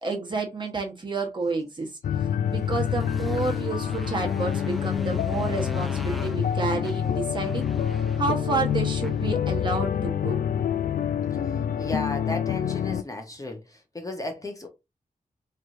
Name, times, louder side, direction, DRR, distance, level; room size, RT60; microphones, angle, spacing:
voice 1, 0.0-1.9 2.2-7.7 8.2-10.4, right 3 dB, 30° right, 1.3 m, -30 dB
sound 1, 2.0-13.0, left 9 dB, 75° left, 0.4 m, -27 dB
Motorcycle, 2.5-9.9, equal, ahead, 0.6 m, -42 dB
voice 2, 11.8-14.7, left 2 dB, 25° left, 1.1 m, -34 dB
4.3 x 3.2 x 2.7 m
wide cardioid pair, 115°, 15 cm